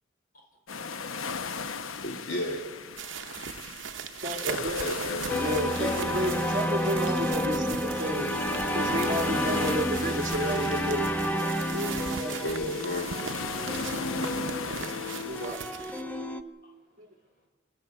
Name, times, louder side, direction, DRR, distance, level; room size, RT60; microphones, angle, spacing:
sound 1, 0.7-15.6, left 5 dB, 90° left, 0.9 m, -37 dB
voice 1, 2.0-2.7 4.4-6.0 12.4-13.1, left 1 dB, 60° left, -1 dB, 2.6 m, -33 dB
sound 2, 3.0-16.0, right 7 dB, 65° right, 0.8 m, -40 dB
voice 2, 4.2-4.9 5.4-8.3 8.7-11.1 11.7-12.5 15.2-15.6 17.0-17.1, right 1 dB, 40° right, 5 dB, 1.7 m, -31 dB
sound 3, 5.3-16.4, equal, 10° left, 0.9 m, -30 dB
voice 3, 16.6-17.5, left 2 dB, 45° left, 0 dB, 5.6 m, -68 dB
28.0 x 11.5 x 9.1 m, 1.3 s
head